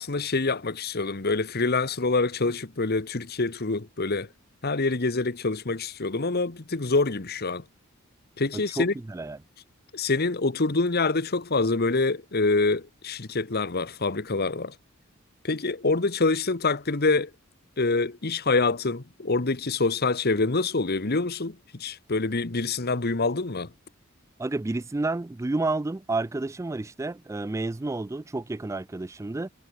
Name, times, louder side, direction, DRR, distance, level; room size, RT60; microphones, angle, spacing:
voice 1, 0.0-4.3 4.6-7.6 8.4-8.9 9.9-14.7 15.4-17.3 17.8-23.7, left 3 dB, 50° left, 1.3 m, -26 dB
voice 2, 8.5-9.4 24.4-29.5, right 2 dB, 15° right, 0.3 m, -30 dB
head